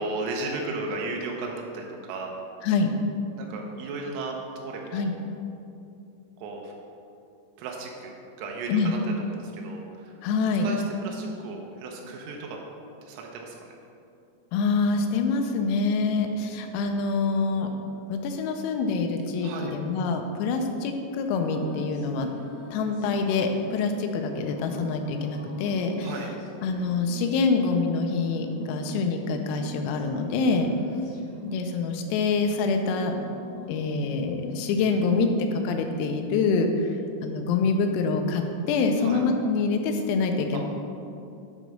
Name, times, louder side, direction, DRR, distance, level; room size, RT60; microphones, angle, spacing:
voice 1, 0.0-2.4 3.4-5.1 6.4-6.7 7.6-10.2 10.6-12.6 13.0-13.6 19.4-19.7 26.0-26.3 39.0-39.2 40.5-40.6, right 3 dB, 80° right, 0 dB, 3.5 m, -35 dB
voice 2, 10.2-10.7 14.5-17.7 18.1-22.3 22.7-26.1 26.6-30.7 31.4-33.2 33.7-36.7 37.2-40.6, left 4 dB, 90° left, 4 dB, 3.5 m, -25 dB
sound 1, 21.3-35.7, left 1 dB, 70° left, 1.9 m, -44 dB
10.5 x 3.9 x 6.2 m, 2.6 s
omnidirectional pair, 5.9 m